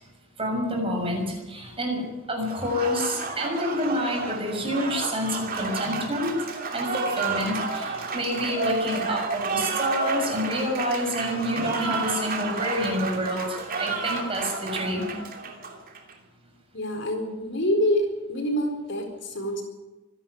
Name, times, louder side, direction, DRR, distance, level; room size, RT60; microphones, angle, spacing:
voice 1, 0.4-6.3 6.7-15.1, equal, 25° right, 1 dB, 6.6 m, -28 dB
Applause, 2.5-16.1, right 4 dB, 45° right, 3.0 m, -31 dB
voice 2, 16.7-19.6, equal, 60° left, 4 dB, 4.4 m, -26 dB
25.0 x 11.5 x 9.6 m, 1.1 s
head